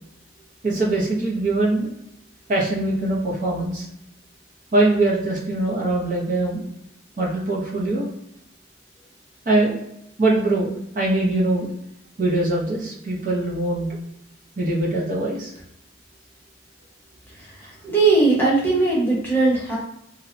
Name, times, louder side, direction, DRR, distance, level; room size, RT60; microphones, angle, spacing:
voice 1, 0.6-1.9 2.5-3.9 4.7-6.6 7.2-8.1 9.5-9.8 10.2-11.7 12.2-13.9 14.6-15.5, right 2 dB, 45° right, -3 dB, 0.5 m, -22 dB
voice 2, 17.6-19.8, right 3 dB, 10° left, -5 dB, 0.8 m, -19 dB
2.7 x 2.0 x 2.5 m, 0.78 s
head